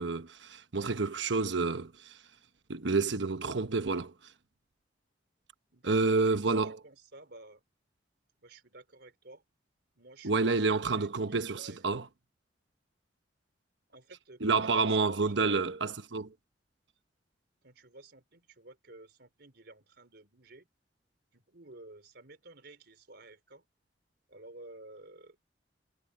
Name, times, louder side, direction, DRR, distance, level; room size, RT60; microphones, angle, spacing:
voice 1, 0.0-2.2 2.7-4.1 5.8-6.8 10.2-12.1 14.4-16.3, right 3 dB, 80° right, 1.1 m, -29 dB
voice 2, 5.7-7.6 8.4-9.4 10.0-11.8 13.9-15.6 17.6-20.7 21.3-23.6 24.3-25.4, right 2 dB, 65° right, 4.2 m, -53 dB
head